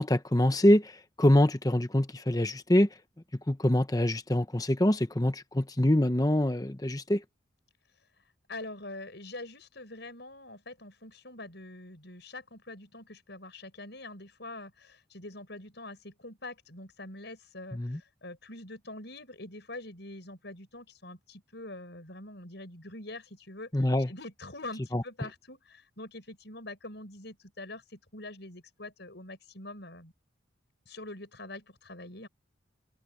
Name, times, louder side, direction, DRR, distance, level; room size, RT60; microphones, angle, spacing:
voice 1, 0.0-2.9 3.5-7.2 17.7-18.0 23.7-24.1 24.9-25.0, left 1 dB, 20° left, 1.0 m, -25 dB
voice 2, 8.5-30.1 30.9-32.3, left 2 dB, 60° left, 7.3 m, -44 dB
head